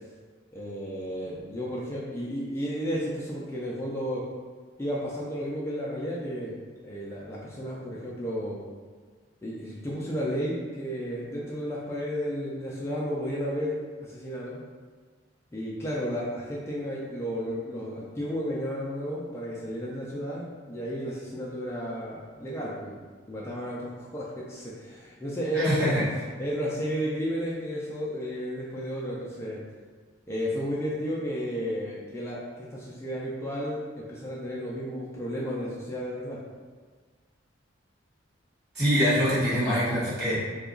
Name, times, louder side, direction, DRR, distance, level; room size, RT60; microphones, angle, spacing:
voice 1, 0.5-4.2 4.8-8.6 9.4-14.6 15.5-23.0 23.3-26.0 26.4-29.6 30.3-36.4, equal, 15° left, -6 dB, 0.3 m, -33 dB
voice 2, 25.5-26.0 38.7-40.4, equal, 55° right, -10 dB, 1.5 m, -24 dB
2.8 x 2.3 x 3.7 m, 1.5 s
head